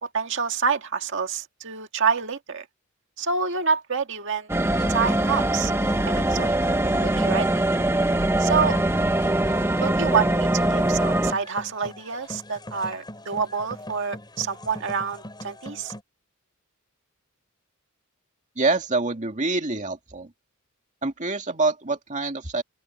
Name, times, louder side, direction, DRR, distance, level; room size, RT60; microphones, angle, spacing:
voice 1, 0.0-2.7 3.2-4.5 4.9-5.7 6.1-6.5 7.0-7.5 8.4-8.8 9.8-15.9, right 5 dB, 60° right, 1.9 m, -27 dB
sound 1, 4.5-11.3, right 1 dB, 10° right, 1.1 m, -22 dB
sound 2, 4.7-16.0, left 1 dB, 20° left, 7.3 m, -41 dB
voice 2, 18.6-20.3 21.0-22.6, right 3 dB, 35° right, 2.3 m, -26 dB
open air
head